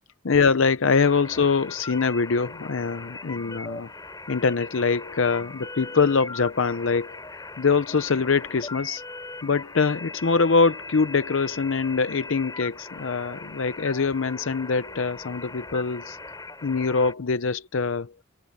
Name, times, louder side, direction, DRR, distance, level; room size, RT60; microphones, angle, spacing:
voice 1, 0.2-3.9 4.3-9.0 9.4-16.2 16.6-18.1, left 4 dB, 65° left, 0.6 m, -23 dB
sound 1, 1.0-17.1, left 3 dB, 15° left, 5.8 m, -40 dB
head